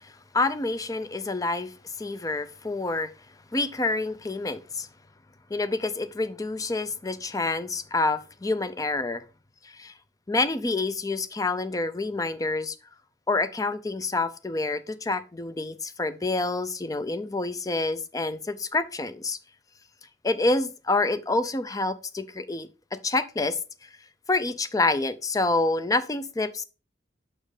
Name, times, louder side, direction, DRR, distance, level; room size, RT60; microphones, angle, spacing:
voice 1, 0.0-3.1 3.5-4.9 5.5-9.2 9.7-9.9 10.3-12.8 13.3-19.4 20.2-22.7 23.0-23.6 24.3-26.6, left 2 dB, 20° left, 0.5 m, -27 dB
6.0 x 4.4 x 4.9 m
head